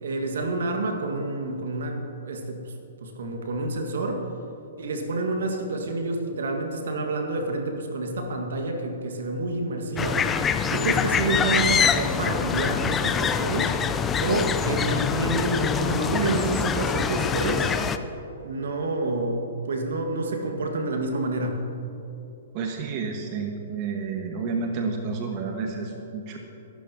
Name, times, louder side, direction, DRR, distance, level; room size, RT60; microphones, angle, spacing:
voice 1, 0.0-2.7 3.0-4.2 4.8-10.4 10.7-13.8 14.2-17.8 18.4-21.6, right 2 dB, 65° right, 3 dB, 1.8 m, -28 dB
sound 1, 10.0-18.0, left 6 dB, 20° left, 0.6 m, -25 dB
voice 2, 22.5-26.4, right 4 dB, 40° right, 3 dB, 1.5 m, -30 dB
23.5 x 12.5 x 2.9 m, 3.0 s
figure-of-eight pair, 115°, 0 cm